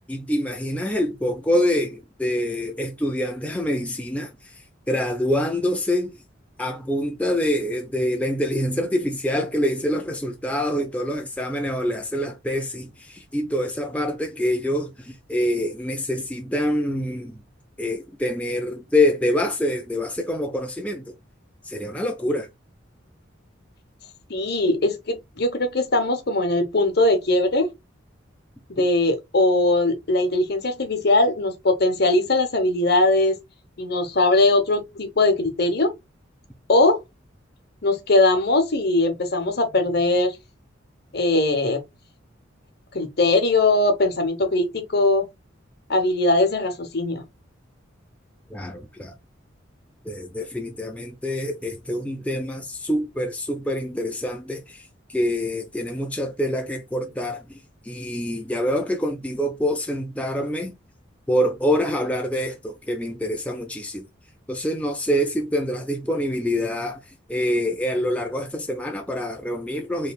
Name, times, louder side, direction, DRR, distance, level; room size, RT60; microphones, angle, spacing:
voice 1, 0.1-4.6 4.9-6.2 6.6-17.4 17.8-21.1 21.6-22.5 28.8-28.9 48.5-49.2 50.0-57.6 57.8-60.8 61.3-64.1 64.5-70.1, left 1 dB, 5° left, 0.5 m, -26 dB
voice 2, 24.3-27.7 28.7-33.4 33.8-35.9 36.7-37.0 37.8-40.3 41.1-41.8 42.9-45.2 45.9-47.2, left 2 dB, 55° left, 1.0 m, -20 dB
4.5 x 3.2 x 2.3 m
head